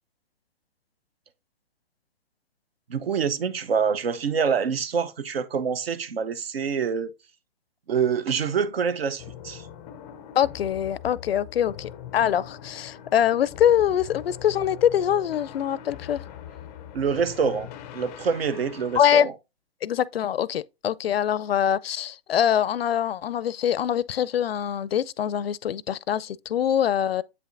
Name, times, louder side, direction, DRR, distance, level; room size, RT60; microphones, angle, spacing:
voice 1, 2.9-7.1 7.9-9.6 16.9-19.3, right 6 dB, 75° right, 0.8 m, -26 dB
sound 1, 9.2-19.0, left 10 dB, 15° left, 0.4 m, -42 dB
voice 2, 10.4-16.2 19.0-19.3 19.8-27.2, left 9 dB, 75° left, 0.5 m, -24 dB
8.1 x 5.8 x 2.5 m
hypercardioid pair, 135°, 30 cm